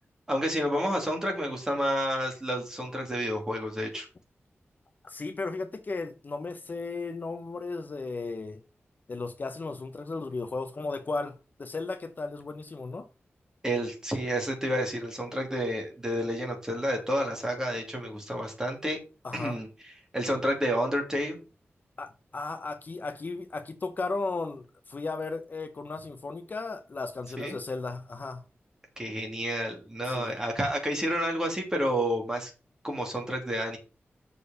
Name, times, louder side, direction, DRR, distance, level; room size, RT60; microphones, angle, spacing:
voice 1, 0.3-4.1 13.6-19.0 19.3-19.7 20.1-21.4 27.4-27.6 29.0-32.5 32.8-33.8, equal, 15° right, 2.8 m, -30 dB
voice 2, 5.0-8.6 9.1-13.1 19.2-19.6 22.0-28.4 30.0-30.4, left 3 dB, 40° left, 0.8 m, -35 dB
6.7 x 4.9 x 6.5 m
wide cardioid pair, 145°, 4 cm